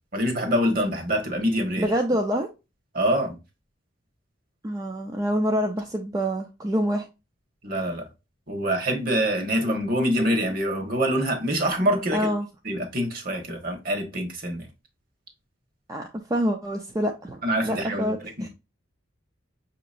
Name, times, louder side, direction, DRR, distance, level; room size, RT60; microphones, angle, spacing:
voice 1, 0.1-1.9 2.9-3.4 7.6-8.1 8.5-12.3 12.6-14.7 17.4-18.5, equal, 45° right, 1.2 m, -25 dB
voice 2, 1.8-2.5 4.6-7.1 12.1-12.5 15.9-18.5, equal, 15° right, 0.4 m, -26 dB
6.0 x 2.9 x 2.4 m
head